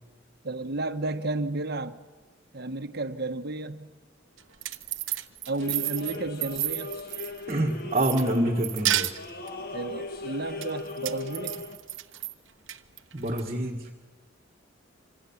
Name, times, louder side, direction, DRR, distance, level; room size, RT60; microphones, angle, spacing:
voice 1, 0.4-1.9 2.5-3.9 5.5-6.9 9.7-11.5, right 2 dB, 55° right, 1.2 m, -32 dB
sound 1, 4.4-7.6 7.9-9.5 10.6-12.3 12.7-13.4, right 13 dB, 85° right, 1.0 m, -31 dB
sound 2, 5.6-11.8, left 3 dB, 50° left, 1.8 m, -39 dB
voice 2, 7.5-9.1 13.1-13.9, right 1 dB, 35° right, 1.7 m, -26 dB
26.0 x 25.5 x 7.2 m
head